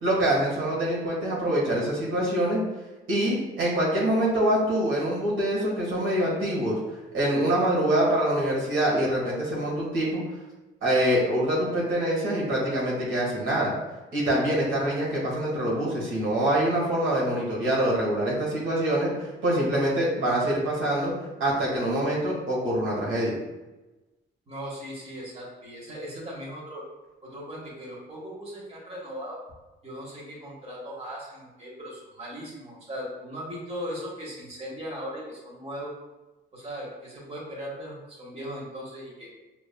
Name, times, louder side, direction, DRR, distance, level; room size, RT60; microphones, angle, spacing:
voice 1, 0.0-2.6 3.1-6.8 7.1-10.2 10.8-13.7 14.1-19.1 19.4-21.1 21.4-23.3, right 1 dB, 80° right, -6 dB, 1.5 m, -25 dB
voice 2, 24.5-26.8 27.2-29.4 29.8-35.9 36.5-39.3, equal, 30° right, -4 dB, 1.5 m, -38 dB
5.3 x 2.9 x 2.2 m, 1.1 s
cardioid pair, 90°, 20 cm